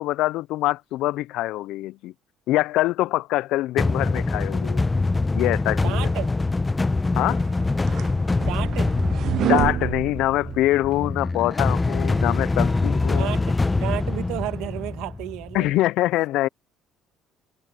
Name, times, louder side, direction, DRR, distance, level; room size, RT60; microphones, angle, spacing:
voice 1, 0.0-2.1 2.5-4.8 5.3-6.1 7.2-7.4 9.4-13.3 15.5-16.5, left 16 dB, 75° left, 0.4 m, -24 dB
sound 1, 3.8-15.7, left 3 dB, 15° left, 0.8 m, -24 dB
voice 2, 5.8-6.4 8.4-8.9 13.2-15.8, right 16 dB, 80° right, 1.4 m, -32 dB
sound 2, 7.4-11.1, right 11 dB, 55° right, 0.4 m, -27 dB
cardioid pair, 115°, 0 cm